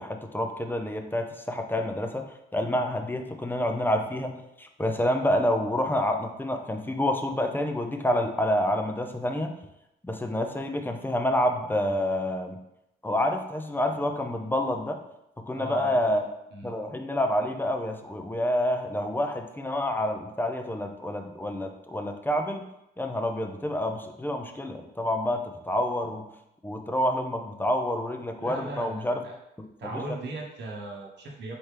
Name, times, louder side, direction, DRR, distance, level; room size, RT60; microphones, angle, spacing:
voice 1, 0.0-9.5 10.0-12.6 13.0-15.0 15.5-16.2 16.6-22.6 23.0-26.3 26.6-29.2 29.6-29.9, left 1 dB, 10° left, 5 dB, 0.5 m, -28 dB
voice 2, 15.5-16.2 16.5-16.7 28.4-29.3 29.8-31.5, right 2 dB, 60° right, 0 dB, 0.9 m, -38 dB
4.3 x 3.2 x 3.3 m, 0.85 s
cardioid pair, 90°, 20 cm